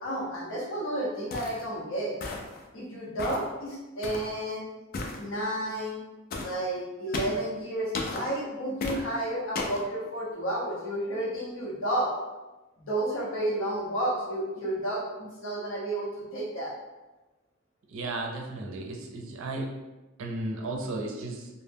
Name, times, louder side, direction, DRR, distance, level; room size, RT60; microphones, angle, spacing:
voice 1, 0.0-2.1 2.7-4.6 5.2-6.0 6.4-12.1 12.8-16.7, right 1 dB, 70° left, -4 dB, 0.8 m, -31 dB
sound 1, 1.3-1.6 2.2-2.6 3.2-3.5 4.0-4.3 4.9-5.2 6.3-6.5 7.1-7.4 7.9-8.2 8.8-9.0 9.6-9.8, left 2 dB, 45° left, 0.4 m, -34 dB
voice 2, 17.9-19.7 20.2-21.5, right 2 dB, 70° right, 2 dB, 0.4 m, -34 dB
2.1 x 2.1 x 3.3 m, 1.1 s
head